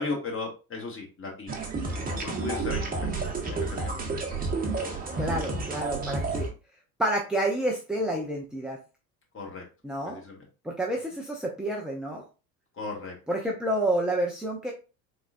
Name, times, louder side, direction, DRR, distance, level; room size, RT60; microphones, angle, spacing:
voice 1, 0.0-1.6 2.1-3.1 3.4-4.1 9.3-9.6 10.0-10.4 12.8-13.1, left 3 dB, 25° left, 0 dB, 1.8 m, -36 dB
sound 1, 1.5-6.5, right 3 dB, 20° right, 1.1 m, -30 dB
voice 2, 5.2-6.5 7.0-8.8 9.8-10.2 10.6-12.2 13.3-14.7, right 1 dB, ahead, -1 dB, 0.6 m, -29 dB
4.1 x 3.6 x 2.5 m, 0.32 s
figure-of-eight pair, 65°, 47 cm